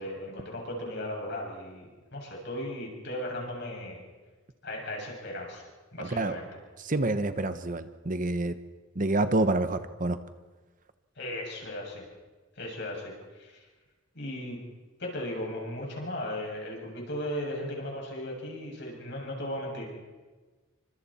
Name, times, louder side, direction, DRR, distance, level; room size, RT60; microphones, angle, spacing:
voice 1, 0.0-4.1 4.6-5.7 5.9-6.5 11.2-12.1 12.6-13.6 14.1-14.7 15.0-19.9, left 1 dB, 60° left, -1 dB, 7.3 m, -36 dB
voice 2, 6.0-6.4 6.8-8.5 9.0-10.2, right 2 dB, 40° right, 10 dB, 1.0 m, -27 dB
29.0 x 25.0 x 4.4 m, 1.3 s
head